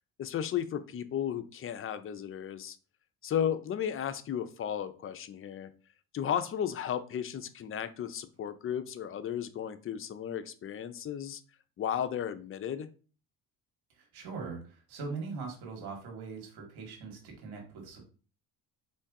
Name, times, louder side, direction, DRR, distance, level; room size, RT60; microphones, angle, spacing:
voice 1, 0.2-2.8 3.2-5.7 6.1-11.4 11.8-12.9, left 9 dB, 35° left, 10 dB, 0.5 m, -34 dB
voice 2, 13.9-18.0, right 4 dB, 85° right, 1 dB, 1.9 m, -41 dB
4.4 x 3.3 x 3.6 m, 0.38 s
cardioid pair, 110°, 38 cm